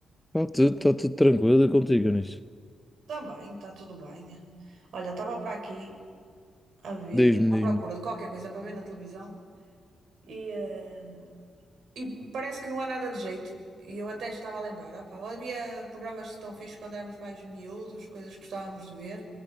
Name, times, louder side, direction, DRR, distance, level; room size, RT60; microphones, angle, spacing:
voice 1, 0.3-2.4 7.1-7.8, left 1 dB, 5° left, 11 dB, 0.6 m, -22 dB
voice 2, 3.1-6.0 6.8-9.4 10.2-11.4 11.9-19.3, right 2 dB, 65° right, 2 dB, 6.2 m, -37 dB
26.0 x 21.0 x 9.4 m, 2.1 s
cardioid pair, 120°, 0 cm